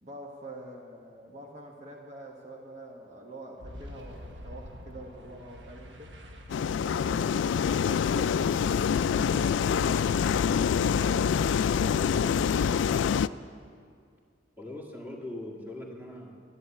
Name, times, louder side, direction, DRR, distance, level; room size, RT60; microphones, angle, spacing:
voice 1, 0.0-6.1 6.8-10.3 10.8-12.8, right 1 dB, 40° right, -1 dB, 1.3 m, -46 dB
Boom, 3.6-10.1, equal, 75° right, 1.3 m, -48 dB
sound 1, 6.5-13.3, left 7 dB, 85° left, 0.3 m, -25 dB
voice 2, 14.6-16.4, left 1 dB, 10° right, -1 dB, 1.8 m, -41 dB
11.5 x 11.0 x 8.2 m, 2.2 s
head